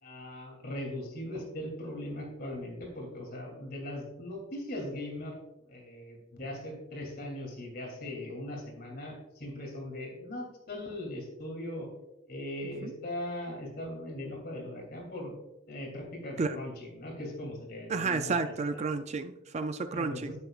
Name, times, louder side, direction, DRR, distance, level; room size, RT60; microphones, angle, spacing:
voice 1, 0.0-5.4 5.6-11.9 12.3-15.3 15.7-18.5 19.9-20.4, left 1 dB, 50° left, 1 dB, 2.7 m, -39 dB
voice 2, 17.9-20.3, right 4 dB, 35° right, 10 dB, 0.4 m, -31 dB
9.9 x 9.7 x 2.4 m, 0.98 s
head